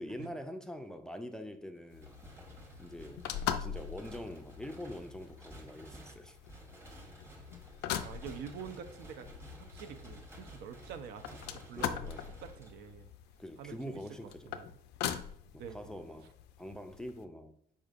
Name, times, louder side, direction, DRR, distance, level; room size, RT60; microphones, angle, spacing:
voice 1, 0.0-2.1 2.8-3.3 3.6-6.4 11.7-12.3 13.4-14.5 15.5-16.3 16.6-17.6, equal, 5° left, 7 dB, 0.3 m, -44 dB
sound 1, 1.9-17.2, left 10 dB, 85° left, 0.4 m, -42 dB
sound 2, 2.0-13.2, right 1 dB, 15° right, 1.1 m, -53 dB
voice 2, 7.9-9.3 9.6-13.1 13.6-14.7 15.6-15.8, right 7 dB, 75° right, 8 dB, 0.5 m, -47 dB
5.0 x 4.3 x 2.4 m, 0.65 s
cardioid pair, 110°, 17 cm